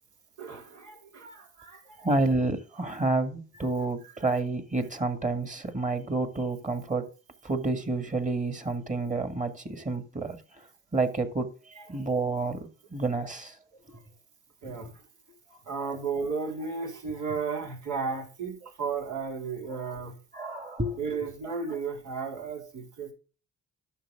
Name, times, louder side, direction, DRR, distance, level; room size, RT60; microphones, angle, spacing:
voice 1, 0.4-2.1 3.5-3.7 4.2-4.3 11.8-11.9 13.9-14.0 14.6-15.0 15.6-20.1 21.0-23.1, right 5 dB, 80° right, 4.1 m, -34 dB
voice 2, 2.0-7.1 7.4-10.7 10.9-11.5 11.9-13.6 14.6-14.7 20.3-21.0, right 3 dB, 25° right, 2.0 m, -29 dB
11.5 x 6.8 x 3.6 m
cardioid pair, 90°, 30 cm